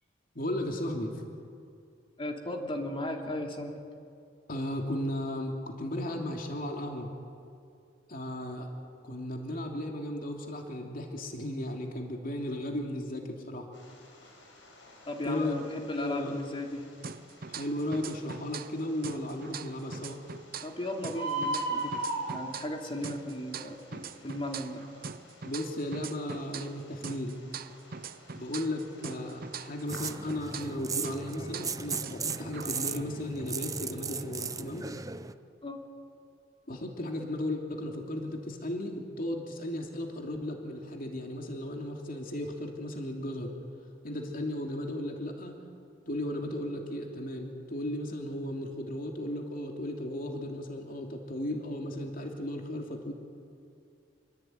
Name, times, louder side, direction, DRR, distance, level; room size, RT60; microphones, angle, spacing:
voice 1, 0.3-1.2 4.5-7.1 8.1-8.7 9.0-13.7 14.2-14.3 15.2-15.6 15.8-16.4 17.5-20.2 25.4-27.4 28.3-34.8 36.7-43.5 44.0-45.6 46.1-53.1, left 1 dB, 50° left, 2 dB, 2.9 m, -35 dB
voice 2, 2.2-3.8 15.1-16.9 20.6-24.8 35.6-35.8, left 1 dB, 30° left, 2 dB, 2.9 m, -36 dB
Bird, 13.7-30.1, right 2 dB, 85° left, 6.3 m, -41 dB
sound 1, 17.0-18.8 19.0-22.8 23.0-26.8 27.0-30.8 31.0-33.0, right 6 dB, 50° right, 0.7 m, -42 dB
sound 2, 29.9-35.3, right 5 dB, 20° right, 0.8 m, -37 dB
27.0 x 22.5 x 9.4 m, 2.4 s
head